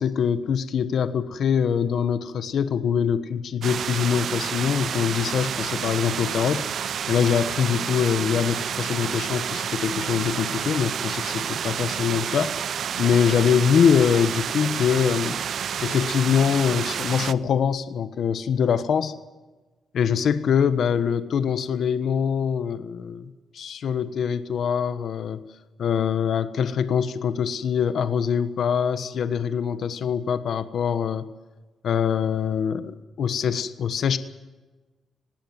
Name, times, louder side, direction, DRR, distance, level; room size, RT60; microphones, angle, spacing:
voice 1, 0.0-6.7 7.1-12.5 13.0-15.4 15.8-19.1 19.9-25.4 25.8-31.3 31.8-34.2, left 7 dB, 65° left, 11 dB, 1.3 m, -23 dB
sound 1, 3.6-17.3, right 8 dB, 60° right, 0.6 m, -29 dB
19.0 x 17.0 x 9.2 m, 1.2 s
cardioid pair, 105°, 0 cm